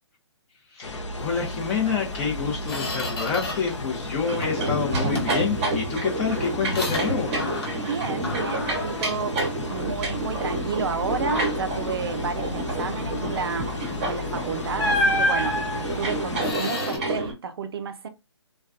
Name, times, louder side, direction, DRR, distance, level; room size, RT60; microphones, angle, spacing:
voice 1, 0.7-7.3, left 6 dB, 20° left, 0.7 m, -28 dB
sound 1, 0.8-16.5, left 2 dB, 85° left, 0.6 m, -35 dB
Squeak, 1.9-2.0 2.4-3.8 4.1-4.7 5.1-7.9 8.2-10.1 10.5-10.7 11.1-11.8 13.9-14.1 14.8-17.0, left 1 dB, 55° left, 1.0 m, -30 dB
sound 2, 4.3-17.3, right 1 dB, 30° right, 1.1 m, -29 dB
voice 2, 7.8-9.4 9.7-13.7 14.0-18.1, right 6 dB, 55° right, 0.4 m, -31 dB
2.2 x 2.2 x 2.5 m
hypercardioid pair, 145°, 15 cm